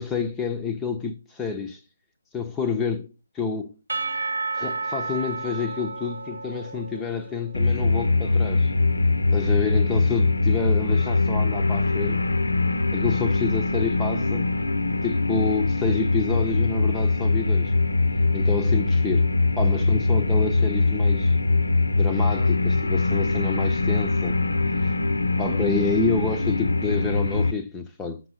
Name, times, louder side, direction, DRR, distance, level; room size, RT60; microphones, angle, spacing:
voice 1, 0.0-1.8 2.3-3.1 3.3-3.7 4.5-8.7 9.3-12.2 12.9-14.5 15.0-17.7 18.3-19.3 19.6-21.4 22.0-24.4 24.6-24.9 25.4-28.2, left 4 dB, 10° left, 0.5 m, -28 dB
Percussion / Church bell, 3.9-7.8, right 4 dB, 55° right, 0.5 m, -32 dB
sound 1, 7.5-27.5, left 3 dB, 65° left, 0.5 m, -22 dB
5.9 x 4.6 x 5.6 m
figure-of-eight pair, 145°, 0 cm